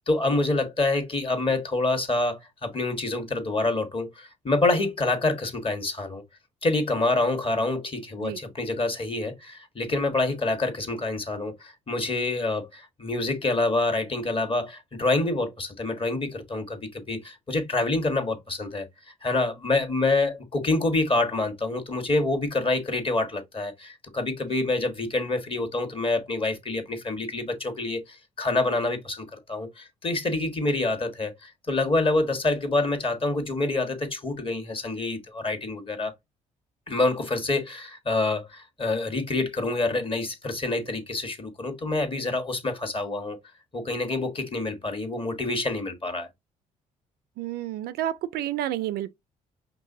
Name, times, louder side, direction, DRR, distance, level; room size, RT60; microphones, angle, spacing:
voice 1, 0.1-6.2 6.6-18.9 19.2-36.1 36.9-43.4 43.7-46.3, left 2 dB, 30° left, 1.4 m, -27 dB
voice 2, 47.4-49.1, right 12 dB, 65° right, 0.4 m, -30 dB
5.3 x 3.0 x 2.7 m
hypercardioid pair, 55°, 17 cm